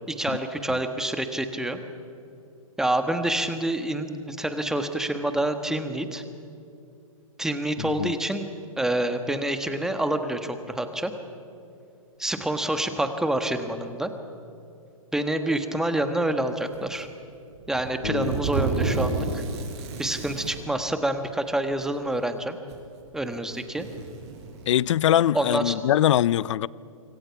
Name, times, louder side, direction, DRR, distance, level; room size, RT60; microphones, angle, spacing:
voice 1, 0.1-1.8 2.8-6.2 7.4-8.5 8.8-11.1 12.2-14.1 15.1-17.1 17.7-19.4 20.0-22.6 23.1-23.9 25.3-25.8, right 1 dB, 5° right, 1.4 m, -27 dB
voice 2, 7.8-8.1 18.0-18.3 24.7-26.7, left 11 dB, 60° left, 0.5 m, -22 dB
sound 1, 16.7-17.1 17.6-20.6 21.7-21.8 22.7-22.8 23.3-24.8, right 4 dB, 50° right, 5.7 m, -31 dB
26.0 x 23.5 x 5.9 m
hypercardioid pair, 140°, 18 cm